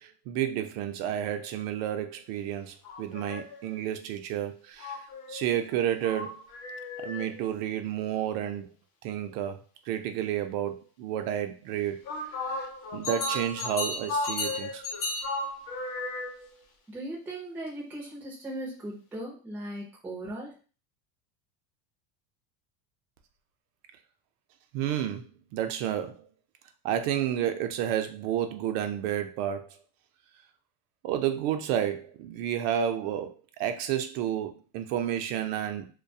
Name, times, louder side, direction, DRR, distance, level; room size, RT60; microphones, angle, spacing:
voice 1, 0.0-5.0 5.3-6.4 7.0-8.7 9.0-12.0 12.5-14.8 24.7-26.3 26.8-29.7 31.0-35.9, right 10 dB, 85° right, 0.6 m, -31 dB
sound 1, 2.8-3.7 4.8-7.4 12.0-16.6, left 2 dB, 45° left, 0.6 m, -34 dB
voice 2, 16.9-20.5, right 1 dB, 5° right, 0.3 m, -38 dB
2.3 x 2.2 x 2.6 m
cardioid pair, 160°, 45 cm